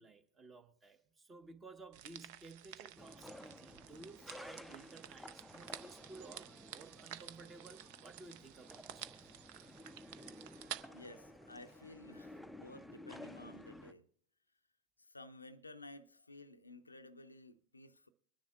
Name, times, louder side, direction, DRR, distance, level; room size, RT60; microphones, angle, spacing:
voice 1, 0.0-9.3, right 3 dB, 20° right, 1.0 m, -55 dB
sound 1, 1.9-10.8, right 11 dB, 45° right, 0.5 m, -51 dB
sound 2, 3.0-13.9, left 1 dB, ahead, 0.5 m, -54 dB
sound 3, 7.1-12.0, right 2 dB, 75° right, 2.5 m, -73 dB
voice 2, 10.9-14.1 15.0-18.1, left 2 dB, 80° left, 0.5 m, -54 dB
24.0 x 10.0 x 2.3 m
figure-of-eight pair, 90°, 0 cm